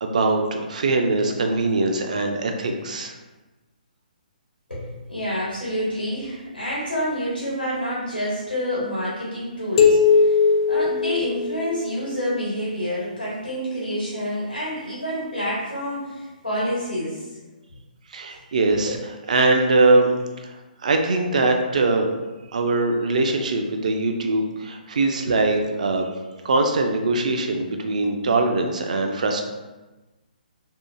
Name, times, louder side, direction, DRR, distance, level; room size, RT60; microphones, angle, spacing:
voice 1, 0.0-3.1 18.1-19.0 19.3-20.1 20.4-22.1 22.5-26.1 26.4-29.4, right 3 dB, 50° right, 4 dB, 0.3 m, -22 dB
voice 2, 4.7-10.4 10.7-17.3 18.9-19.0, equal, 85° left, -9 dB, 1.0 m, -28 dB
sound 1, 9.8-12.2, left 5 dB, 40° left, 0.4 m, -19 dB
2.7 x 2.4 x 2.3 m, 1.2 s
figure-of-eight pair, 135°, 5 cm